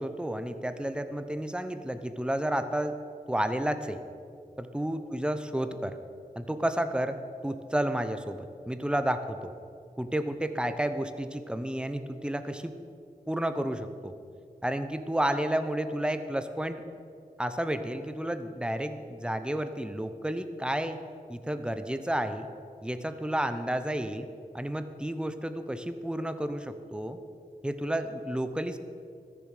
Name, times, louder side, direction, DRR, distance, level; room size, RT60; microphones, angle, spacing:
voice 1, 0.0-3.0 3.3-4.0 4.6-5.9 6.4-9.5 10.0-12.7 13.3-14.1 14.6-16.8 17.4-21.0 21.3-22.5 22.8-24.3 24.5-27.2 27.6-28.8, right 1 dB, 5° right, 9 dB, 0.7 m, -31 dB
14.0 x 7.0 x 6.6 m, 2.3 s
wide cardioid pair, 65°, 16 cm